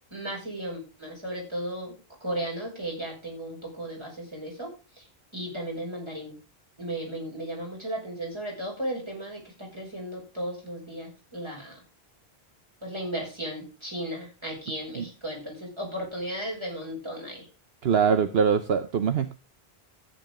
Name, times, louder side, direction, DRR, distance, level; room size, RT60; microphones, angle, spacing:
voice 1, 0.1-1.9 2.2-5.1 5.3-6.4 6.8-11.8 12.8-17.5, right 1 dB, 25° right, -2 dB, 6.5 m, -35 dB
voice 2, 17.8-19.3, right 7 dB, 70° right, 10 dB, 1.1 m, -23 dB
13.5 x 9.7 x 3.8 m, 0.30 s
omnidirectional pair, 1.1 m